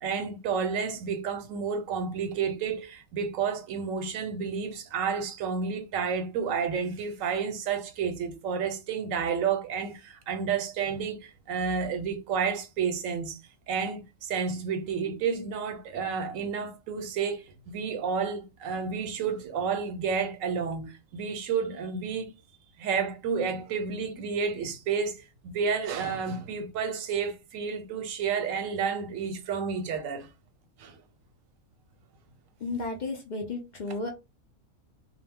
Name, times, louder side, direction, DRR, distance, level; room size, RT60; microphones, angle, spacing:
voice 1, 0.0-13.4 13.7-22.3 22.8-30.3 30.8-31.0, right 6 dB, 85° right, 1.0 m, -30 dB
voice 2, 32.6-34.1, left 3 dB, 65° left, 0.4 m, -33 dB
2.2 x 2.0 x 3.4 m
omnidirectional pair, 1.3 m